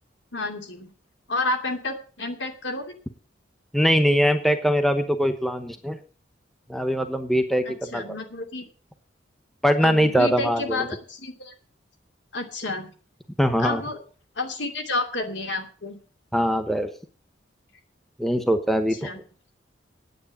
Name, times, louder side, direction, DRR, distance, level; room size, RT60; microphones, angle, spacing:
voice 1, 0.3-0.9 1.3-2.9 7.7-8.6 9.8-11.5 12.3-12.9 13.6-14.0 14.4-16.0 19.0-19.2, left 2 dB, 70° left, 5 dB, 2.7 m, -30 dB
voice 2, 3.7-6.0 6.7-8.0 9.6-10.8 13.4-13.8 16.3-16.9 18.2-19.1, equal, ahead, 8 dB, 0.9 m, -22 dB
9.6 x 8.4 x 8.5 m, 0.41 s
head